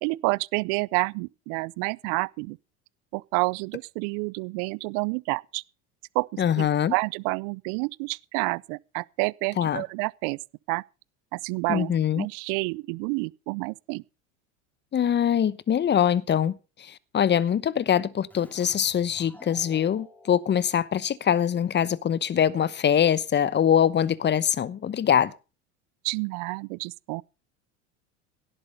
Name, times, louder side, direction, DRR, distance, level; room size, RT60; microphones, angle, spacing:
voice 1, 0.0-2.6 3.1-5.6 6.1-10.4 10.7-10.8 11.3-14.0 26.0-27.2, right 29 dB, 60° right, 0.6 m, -29 dB
voice 2, 6.4-6.9 9.6-9.8 11.7-12.3 14.9-25.3, left 9 dB, 30° left, 1.0 m, -23 dB
Keyboard (musical), 18.3-21.7, left 2 dB, 5° left, 2.8 m, -52 dB
17.0 x 7.9 x 5.4 m
hypercardioid pair, 95°, 36 cm